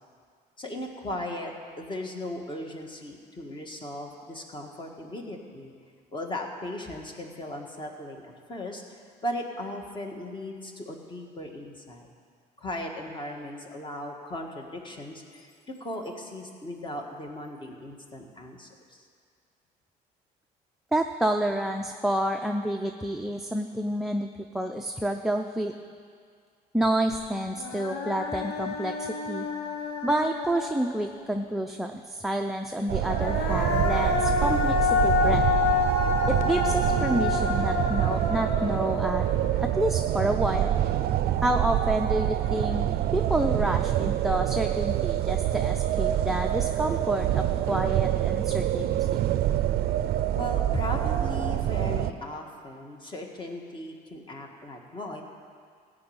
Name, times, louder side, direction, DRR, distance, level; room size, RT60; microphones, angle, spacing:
voice 1, 0.6-5.7 6.1-12.1 12.6-19.0 50.3-55.2, left 1 dB, 30° left, 2 dB, 1.7 m, -37 dB
voice 2, 20.9-25.7 26.7-29.5 30.0-35.4 36.3-39.2 39.6-40.8 41.4-49.2, right 1 dB, ahead, 3 dB, 0.5 m, -29 dB
Human voice, 27.1-27.2 27.6-31.2 32.9-40.2, left 5 dB, 90° left, 1.3 m, -29 dB
sound 1, 32.9-52.1, right 12 dB, 65° right, 0.5 m, -26 dB
15.0 x 5.4 x 8.7 m, 2.1 s
cardioid pair, 110°, 17 cm